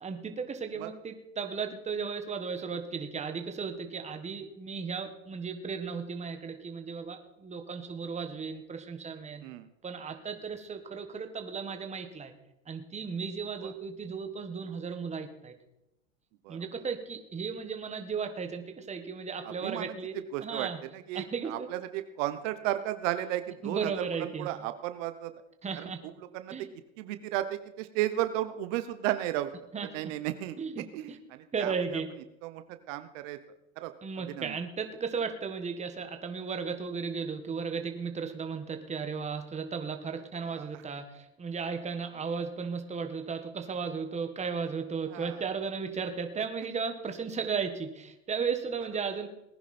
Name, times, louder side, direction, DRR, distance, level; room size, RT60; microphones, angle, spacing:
voice 1, 0.0-9.4 9.8-12.3 12.7-15.5 16.5-20.1 20.4-20.8 21.1-21.7 23.6-24.5 25.6-26.0 26.5-26.6 29.7-29.9 30.6-31.2 31.5-32.1 34.0-49.3, right 5 dB, 15° right, 6 dB, 1.6 m, -35 dB
voice 2, 19.4-20.0 20.3-25.3 25.7-26.7 27.0-29.5 29.9-32.0 32.4-33.4 33.8-34.6 40.4-40.8 45.1-45.4 48.9-49.1, right 13 dB, 65° right, 10 dB, 1.2 m, -35 dB
19.0 x 10.5 x 4.4 m, 0.90 s
supercardioid pair, 130°, 41 cm